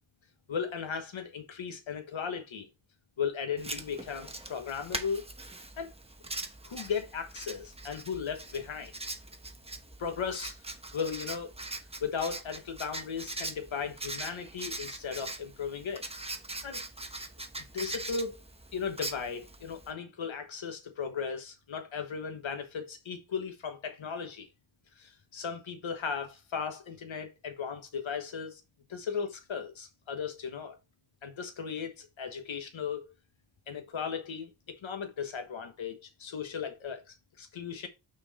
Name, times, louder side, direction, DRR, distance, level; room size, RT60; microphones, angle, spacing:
voice 1, 0.5-2.7 3.2-5.2 5.8-5.9 6.6-8.9 10.0-11.5 12.0-16.0 16.6-16.8 17.7-18.4 18.7-24.5 25.0-28.6 28.9-30.8 31.2-33.1 33.7-37.9, left 6 dB, 75° left, 1.3 m, -36 dB
Writing, 3.6-19.9, right 2 dB, 15° right, 0.9 m, -42 dB
6.3 x 4.5 x 4.1 m
wide cardioid pair, 105°, 47 cm